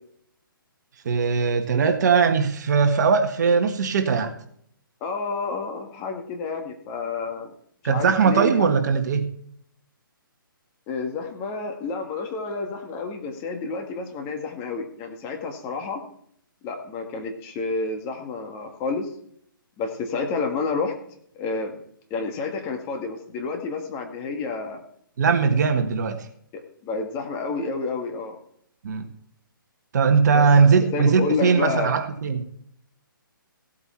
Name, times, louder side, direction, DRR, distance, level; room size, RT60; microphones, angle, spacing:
voice 1, 1.0-4.3 7.8-9.3 25.2-26.3 28.8-29.1 29.9-32.5, right 5 dB, 50° right, 7 dB, 1.7 m, -20 dB
voice 2, 5.0-7.5 7.8-8.6 10.9-16.0 16.6-19.1 19.8-20.9 21.4-21.8 22.1-24.8 25.6-25.8 26.5-28.4 30.3-30.5 30.7-32.0, left 4 dB, 20° left, 4 dB, 1.8 m, -30 dB
16.5 x 8.4 x 4.4 m, 0.67 s
hypercardioid pair, 160°, 12 cm